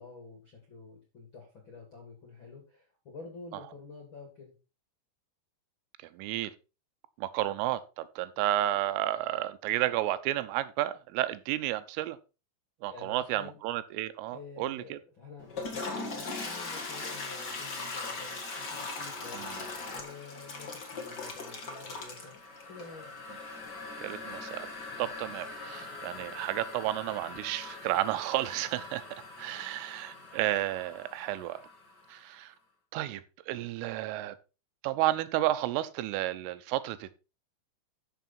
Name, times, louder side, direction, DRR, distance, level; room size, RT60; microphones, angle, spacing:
voice 1, 0.0-4.5 12.9-13.6 14.3-19.6 19.9-22.3 22.7-23.1, left 4 dB, 35° left, 2.4 m, -49 dB
voice 2, 6.1-6.5 7.2-12.2 12.8-15.0 19.3-19.6 24.0-24.7 25.0-29.0 29.4-31.6 32.1-32.5 32.9-34.3 34.8-37.1, right 14 dB, 90° right, 3.4 m, -32 dB
Toilet flush, 15.4-32.1, left 3 dB, 80° left, 0.9 m, -41 dB
13.0 x 6.1 x 4.3 m
omnidirectional pair, 5.7 m